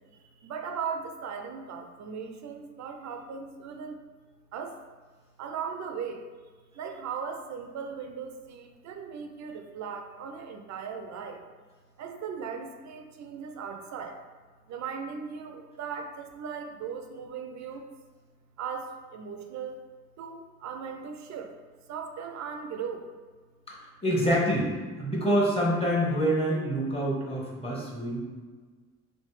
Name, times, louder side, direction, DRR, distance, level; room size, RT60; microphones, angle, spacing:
voice 1, 0.1-4.0 4.5-4.8 5.4-6.3 6.7-11.4 12.0-14.2 14.7-17.9 18.6-19.8 20.2-21.5 21.9-23.1, right 6 dB, 70° right, 5 dB, 0.4 m, -38 dB
voice 2, 23.7-24.7 25.0-28.2, equal, 20° left, -4 dB, 1.1 m, -26 dB
3.2 x 2.6 x 3.1 m, 1.4 s
cardioid pair, 90°, 30 cm